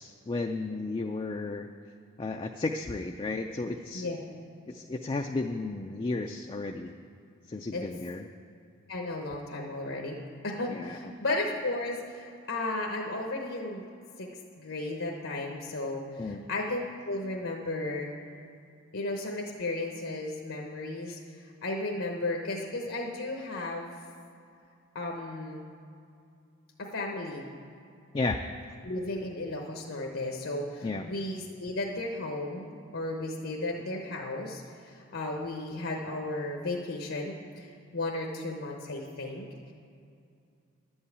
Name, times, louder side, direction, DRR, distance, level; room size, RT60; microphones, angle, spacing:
voice 1, 0.0-1.7 2.2-4.1 4.7-6.9 7.5-8.2 10.7-11.1 16.2-16.4 28.1-28.4 30.8-31.1, left 3 dB, 25° left, 4 dB, 0.3 m, -33 dB
voice 2, 8.9-10.2 10.4-13.8 14.2-18.1 18.9-24.0 24.9-25.7 26.8-27.5 28.8-39.7, left 2 dB, 75° left, 0 dB, 1.0 m, -34 dB
11.5 x 5.5 x 8.3 m, 2.4 s
head